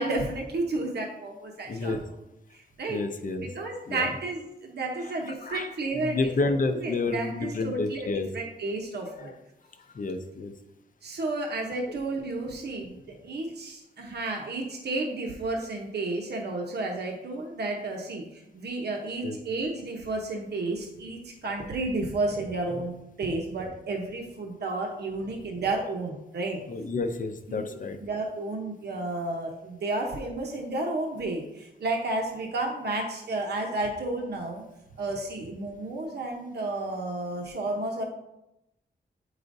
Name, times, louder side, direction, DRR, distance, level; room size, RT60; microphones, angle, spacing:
voice 1, 0.0-2.0 2.5-3.0 3.5-6.2 6.7-8.1 8.3-9.3 11.0-26.6 27.5-34.6 35.0-38.0, right 2 dB, 70° right, 1 dB, 0.9 m, -32 dB
voice 2, 1.7-2.0 2.9-3.5 3.9-4.1 5.0-5.1 5.4-5.7 5.9-8.3 9.2-9.3 9.9-10.5 19.2-19.4 26.7-28.0, left 3 dB, 50° left, 7 dB, 0.6 m, -30 dB
8.0 x 4.9 x 2.6 m, 0.89 s
wide cardioid pair, 165°, 18 cm